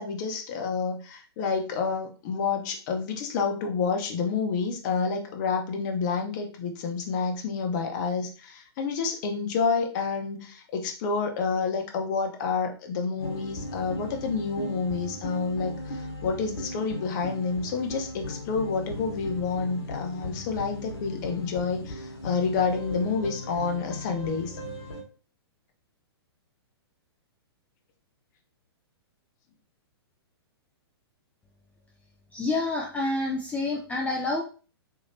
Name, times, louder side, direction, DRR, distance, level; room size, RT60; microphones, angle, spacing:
voice 1, 0.0-24.6, left 5 dB, 45° left, 4 dB, 0.9 m, -29 dB
sound 1, 13.2-25.0, left 1 dB, 75° left, 1.2 m, -37 dB
voice 2, 32.3-34.4, left 2 dB, 10° left, 0 dB, 0.4 m, -28 dB
3.2 x 2.8 x 2.7 m, 0.38 s
hypercardioid pair, 125°, 14 cm